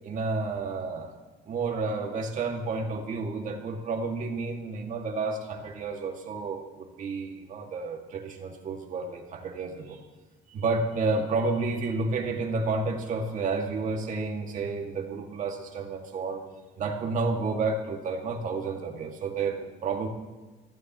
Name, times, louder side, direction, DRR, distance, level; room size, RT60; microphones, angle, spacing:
voice 1, 0.0-1.1 1.5-10.0 10.5-16.4 16.8-20.1, right 3 dB, 45° right, 2 dB, 2.2 m, -30 dB
23.5 x 15.5 x 3.1 m, 1.2 s
cardioid pair, 165°, 19 cm